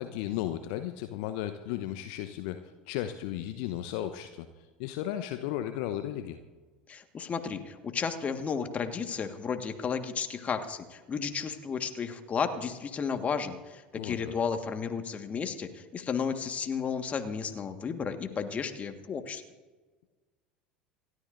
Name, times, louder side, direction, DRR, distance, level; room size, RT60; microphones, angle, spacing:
voice 1, 0.0-4.5 4.8-6.4 13.9-14.3, left 12 dB, 55° left, 9 dB, 0.8 m, -35 dB
voice 2, 6.9-19.4, left 6 dB, 30° left, 7 dB, 1.6 m, -33 dB
28.0 x 13.0 x 2.6 m, 1.3 s
figure-of-eight pair, 70°, 5 cm